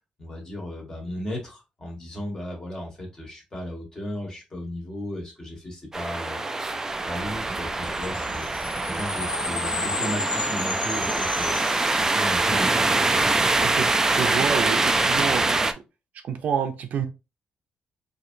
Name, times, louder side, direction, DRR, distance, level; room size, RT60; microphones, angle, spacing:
voice 1, 0.2-6.7 7.0-8.5 8.8-12.9, left 1 dB, 25° left, 1.6 m, -35 dB
sound 1, 5.9-15.7, right 2 dB, 15° right, 0.4 m, -24 dB
sound 2, 7.8-12.4, left 4 dB, 45° left, 0.8 m, -34 dB
sound 3, 9.3-15.0, left 3 dB, 65° left, 1.2 m, -48 dB
voice 2, 13.7-15.7 16.2-17.1, right 7 dB, 65° right, 0.6 m, -28 dB
4.4 x 2.8 x 2.7 m
cardioid pair, 135°, 3 cm